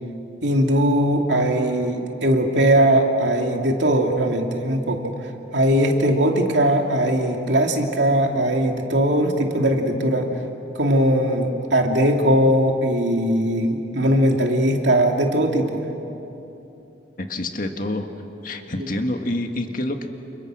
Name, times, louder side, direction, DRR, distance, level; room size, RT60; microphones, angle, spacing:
voice 1, 0.4-5.1 5.5-10.3 10.7-15.8, right 1 dB, 75° right, 2 dB, 2.6 m, -20 dB
voice 2, 17.2-18.1 18.4-20.1, left 1 dB, 50° left, 5 dB, 1.8 m, -27 dB
29.5 x 29.0 x 6.4 m, 3.0 s
head